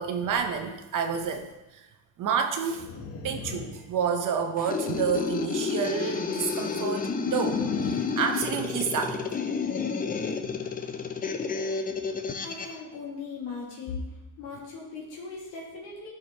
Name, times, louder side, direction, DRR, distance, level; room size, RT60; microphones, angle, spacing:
voice 1, 0.0-1.5 1.7-1.8 2.2-2.9 3.2-9.4, right 6 dB, 45° right, 6 dB, 0.7 m, -29 dB
sound 1, 2.7-4.5 7.4-9.0, left 4 dB, 90° left, 1.0 m, -39 dB
sound 2, 4.6-12.8, left 5 dB, 20° left, 0.5 m, -30 dB
voice 2, 12.4-14.1 14.4-16.1, left 4 dB, 75° left, -4 dB, 2.0 m, -38 dB
9.6 x 5.0 x 2.8 m, 1.0 s
supercardioid pair, 105°, 43 cm